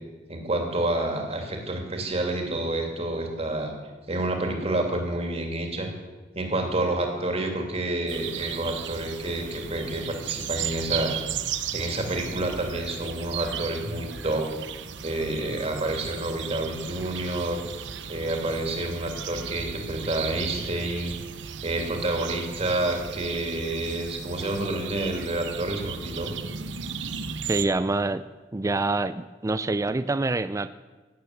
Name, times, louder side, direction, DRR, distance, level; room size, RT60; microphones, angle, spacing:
voice 1, 0.3-3.7 4.1-5.9 6.3-11.1 11.7-14.5 15.0-17.6 18.1-21.1 21.6-26.3, right 1 dB, 35° right, 3 dB, 2.9 m, -29 dB
sound 1, 8.1-27.7, right 7 dB, 85° right, 0.8 m, -36 dB
voice 2, 27.5-28.2 28.5-30.7, right 2 dB, 15° right, 13 dB, 0.4 m, -26 dB
16.5 x 9.5 x 7.9 m, 1.3 s
head